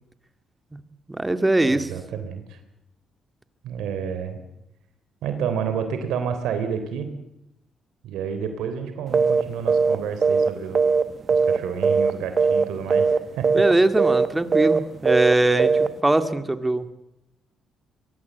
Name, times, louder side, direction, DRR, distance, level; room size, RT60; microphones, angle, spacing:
voice 1, 1.1-1.9 13.5-16.9, right 2 dB, 15° right, 9 dB, 2.1 m, -21 dB
voice 2, 1.7-2.6 3.6-4.4 5.2-7.1 8.0-10.8 11.3-13.6, right 7 dB, 85° right, 8 dB, 3.4 m, -30 dB
sound 1, 9.1-9.4 9.7-9.9 10.2-11.6 11.8-12.1 12.4-12.6 12.9-13.2 13.4-13.7 14.0-14.3 14.5-14.8 15.0-15.3 15.6-15.9, right 5 dB, 40° right, 1.3 m, -19 dB
23.5 x 22.5 x 8.1 m, 0.86 s
cardioid pair, 90°, 0 cm